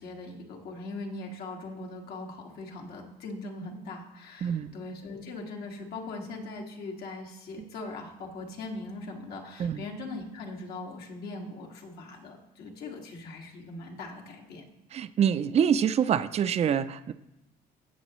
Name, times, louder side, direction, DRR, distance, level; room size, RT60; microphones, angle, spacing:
voice 1, 0.0-14.6, left 2 dB, 70° left, 1 dB, 2.0 m, -40 dB
voice 2, 4.4-4.7 7.6-7.7 9.6-9.8 14.9-17.1, right 8 dB, 40° right, 12 dB, 0.5 m, -26 dB
17.5 x 7.0 x 3.1 m, 0.92 s
cardioid pair, 110°, 17 cm